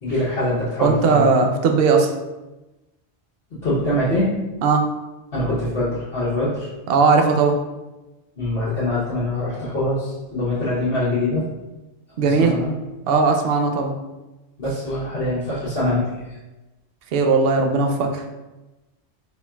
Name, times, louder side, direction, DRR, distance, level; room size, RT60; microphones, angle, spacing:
voice 1, 0.0-1.3 3.6-4.3 5.3-6.7 8.4-11.5 12.2-12.7 14.6-16.4, left 1 dB, 55° left, -10 dB, 1.2 m, -23 dB
voice 2, 0.8-2.1 4.6-4.8 6.9-7.6 12.2-12.6 13.1-13.9 17.1-18.3, right 4 dB, 65° right, 4 dB, 0.7 m, -18 dB
4.4 x 3.8 x 2.3 m, 1.1 s
omnidirectional pair, 1.2 m